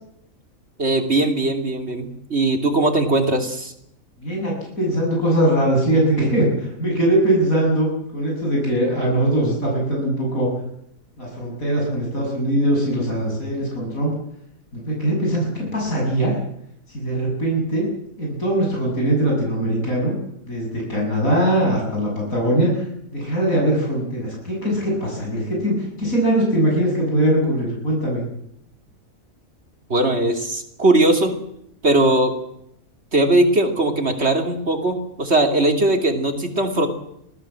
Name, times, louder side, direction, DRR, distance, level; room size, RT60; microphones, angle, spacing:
voice 1, 0.8-3.7 29.9-31.4 31.8-32.3 33.1-36.9, right 2 dB, 50° right, 5 dB, 3.3 m, -19 dB
voice 2, 4.2-10.5 11.2-14.1 14.7-16.3 16.9-17.9 18.2-20.1 20.5-22.8 23.1-28.2, right 1 dB, 85° left, -2 dB, 7.6 m, -21 dB
25.0 x 18.0 x 7.7 m, 0.77 s
omnidirectional pair, 1.4 m